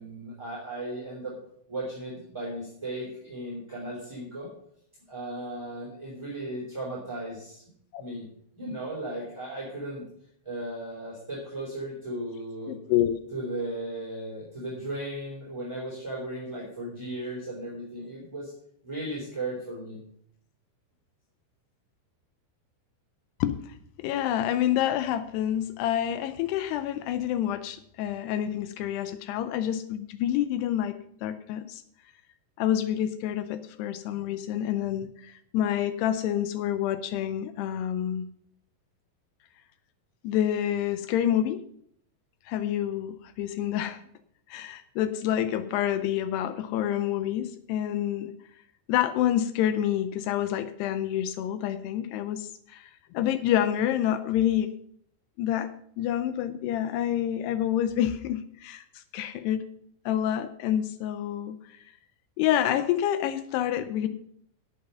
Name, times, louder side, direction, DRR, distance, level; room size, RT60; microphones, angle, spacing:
voice 1, 0.0-1.3 1.7-4.5 5.1-7.6 8.0-8.3 8.5-10.0 10.4-12.8 13.3-18.5 18.8-20.0, right 1 dB, 5° right, -5 dB, 2.7 m, -36 dB
voice 2, 12.7-13.2 23.4-23.6 24.0-30.9 31.2-31.8 32.6-38.3 40.2-41.6 42.5-44.0 44.5-48.3 48.9-54.7 55.4-55.7 56.0-59.7 60.1-61.8 62.4-64.1, left 11 dB, 85° left, 11 dB, 2.4 m, -28 dB
11.0 x 8.9 x 5.5 m, 0.67 s
omnidirectional pair, 5.5 m